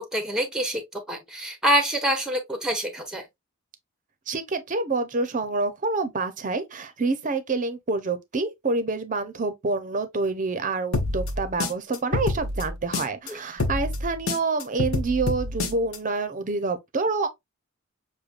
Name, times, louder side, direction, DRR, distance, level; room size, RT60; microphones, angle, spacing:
voice 1, 0.0-3.2 13.3-13.4, equal, 5° right, 0.9 m, -26 dB
voice 2, 4.3-17.3, right 3 dB, 35° right, 0.7 m, -27 dB
sound 1, 10.9-13.3 13.6-16.0, left 2 dB, 70° left, 0.9 m, -27 dB
6.6 x 2.2 x 2.4 m
head